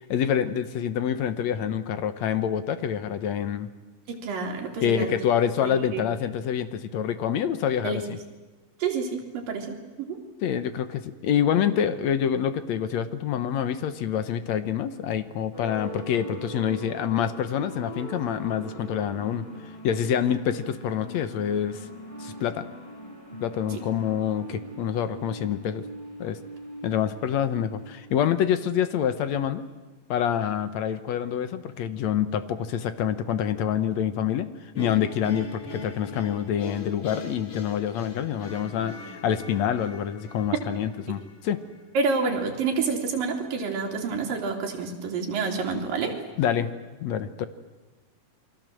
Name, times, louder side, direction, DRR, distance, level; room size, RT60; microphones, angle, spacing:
voice 1, 0.1-3.7 4.8-8.2 10.4-19.5 19.8-21.9 22.2-22.7 23.4-25.8 26.2-26.4 26.8-29.7 30.1-34.5 34.8-41.6 46.4-46.7 47.0-47.5, left 9 dB, 65° left, 12 dB, 1.8 m, -26 dB
voice 2, 4.1-5.1 5.6-6.0 7.8-8.0 8.8-10.2 23.7-23.8 41.9-46.1, right 4 dB, 70° right, 2 dB, 4.7 m, -28 dB
sound 1, 15.5-28.9, equal, 10° left, 6.5 m, -41 dB
sound 2, 34.7-41.8, left 3 dB, 40° left, 2.8 m, -40 dB
28.5 x 23.0 x 7.7 m, 1.2 s
omnidirectional pair, 4.1 m